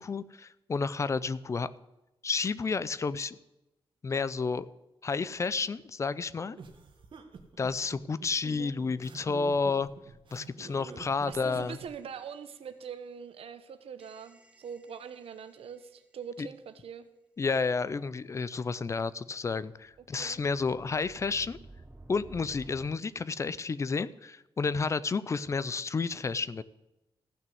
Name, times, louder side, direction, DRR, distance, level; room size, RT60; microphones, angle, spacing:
voice 1, 0.0-1.7 2.2-3.4 4.0-4.7 5.0-6.6 7.6-9.9 10.3-11.8 16.4-16.5 17.4-21.6 22.1-26.6, left 4 dB, 30° left, 16 dB, 0.4 m, -31 dB
sound 1, 6.6-11.9, right 5 dB, 55° right, 1.5 m, -47 dB
sound 2, 11.3-12.4 14.0-15.8 19.7-22.9, right 2 dB, 10° right, 0.7 m, -54 dB
voice 2, 11.3-17.0 20.2-20.4, right 7 dB, 75° right, 11 dB, 1.0 m, -43 dB
14.5 x 6.1 x 7.8 m, 0.95 s
wide cardioid pair, 170°, 10 cm